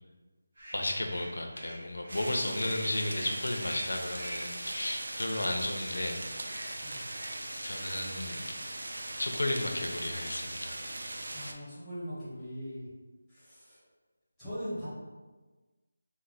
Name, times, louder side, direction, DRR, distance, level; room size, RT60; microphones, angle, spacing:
sound 1, 0.6-8.6 8.9-9.2 9.6-9.8 10.2-10.5 10.8-11.3, equal, 30° right, 1.3 m, -47 dB
voice 1, 0.7-6.5 7.6-8.5 9.2-10.8, left 1 dB, 80° left, 3 dB, 0.6 m, -33 dB
sound 2, 2.1-11.5, right 1 dB, 70° right, 0.4 m, -40 dB
voice 2, 11.3-12.9 13.3-13.8 14.4-14.9, equal, ahead, -14 dB, 0.7 m, -40 dB
3.1 x 2.1 x 3.9 m, 1.3 s
figure-of-eight pair, 180°, 0 cm